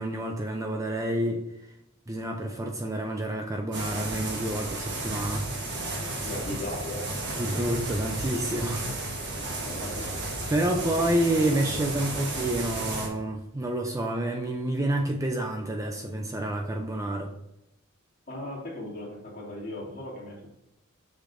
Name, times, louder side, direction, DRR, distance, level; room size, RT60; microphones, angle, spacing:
voice 1, 0.0-1.4 2.1-5.5 7.4-8.9 10.5-17.3, right 1 dB, 15° right, 3 dB, 0.5 m, -28 dB
sound 1, 3.7-13.1, right 2 dB, 55° right, 1.2 m, -33 dB
voice 2, 6.2-7.1 9.3-10.2 18.3-20.5, left 1 dB, 40° left, -5 dB, 2.4 m, -37 dB
7.4 x 6.5 x 2.6 m, 0.86 s
head